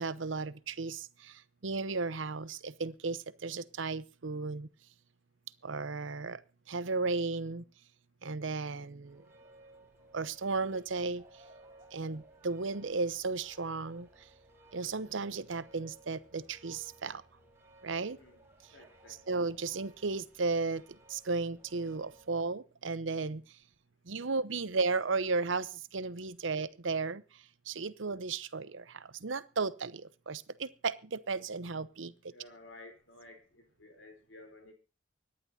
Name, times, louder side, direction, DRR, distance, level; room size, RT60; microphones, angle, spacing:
voice 1, 0.0-4.7 5.6-6.4 6.7-7.6 8.2-9.2 10.1-11.2 11.9-14.3 14.7-17.2 17.8-18.2 19.1-20.8 21.1-23.6 24.0-32.1, right 4 dB, 85° right, 15 dB, 0.9 m, -35 dB
sound 1, 9.0-22.3, right 1 dB, 15° right, 5.1 m, -60 dB
voice 2, 18.7-19.3 32.3-34.7, left 2 dB, 90° left, 4 dB, 3.8 m, -54 dB
24.5 x 10.5 x 2.8 m, 0.35 s
head